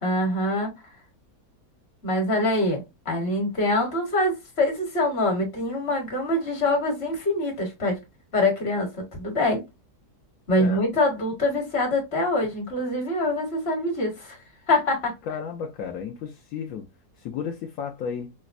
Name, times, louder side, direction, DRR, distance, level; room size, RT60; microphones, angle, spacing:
voice 1, 0.0-0.7 2.0-8.0 8.3-9.6 10.5-14.4 14.7-15.1, left 1 dB, 40° left, 1.4 m, -24 dB
voice 2, 15.3-16.9 17.2-18.3, left 7 dB, 70° left, 1.0 m, -33 dB
4.9 x 2.1 x 2.4 m
omnidirectional pair, 1.7 m